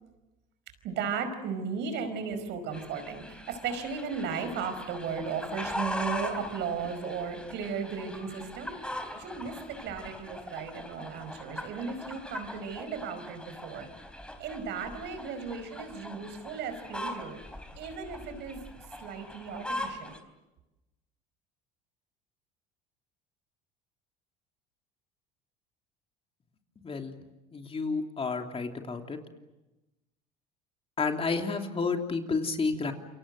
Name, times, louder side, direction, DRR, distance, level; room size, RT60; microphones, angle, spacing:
voice 1, 0.8-8.8 9.1-13.9 14.4-17.4 17.8-18.6 19.0-20.1, right 6 dB, 65° right, 9 dB, 5.0 m, -36 dB
sound 1, 2.7-20.2, left 1 dB, 5° left, 3.9 m, -40 dB
voice 2, 27.5-29.2 31.0-32.9, left 4 dB, 30° left, 4 dB, 3.0 m, -30 dB
28.5 x 23.5 x 7.8 m, 1.0 s
supercardioid pair, 85°, 20 cm